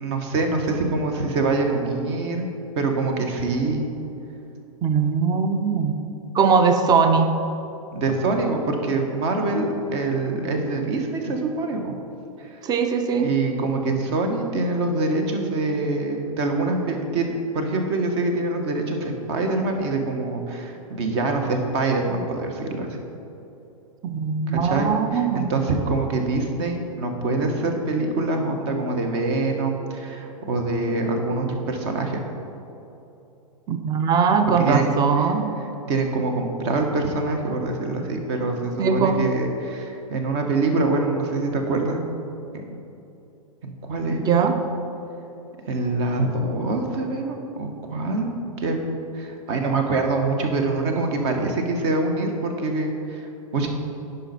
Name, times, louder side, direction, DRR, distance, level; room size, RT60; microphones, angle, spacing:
voice 1, 0.0-2.4 2.7-3.9 7.9-11.9 12.4-12.6 13.2-23.0 24.5-32.2 34.6-34.9 35.2-35.3 35.9-42.0 42.5-42.7 43.6-44.2 45.7-48.3 48.6-48.8 49.1-53.2 53.5-53.7, right 3 dB, 45° right, 4 dB, 1.2 m, -25 dB
voice 2, 4.8-5.9 6.3-7.3 12.6-13.3 24.1-25.5 33.7-35.4 38.8-39.2 44.2-44.6, right 5 dB, 20° right, 7 dB, 0.6 m, -20 dB
10.0 x 5.4 x 4.2 m, 2.9 s
hypercardioid pair, 110°, 18 cm